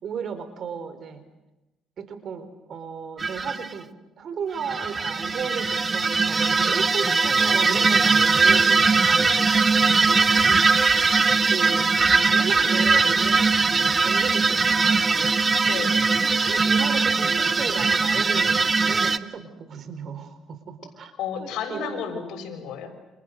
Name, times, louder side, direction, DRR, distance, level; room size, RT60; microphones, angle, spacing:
voice 1, 0.0-1.2 2.0-3.9 4.2-9.5 10.0-10.6 11.4-15.3 16.5-21.1 21.4-22.1, right 6 dB, 55° right, 10 dB, 4.5 m, -35 dB
sound 1, 3.2-3.7 4.6-19.2, right 4 dB, 30° right, 1.2 m, -20 dB
voice 2, 15.6-16.0 21.2-22.9, left 7 dB, 80° left, 4 dB, 6.5 m, -32 dB
29.5 x 27.5 x 6.7 m, 1.0 s
cardioid pair, 90°, 0 cm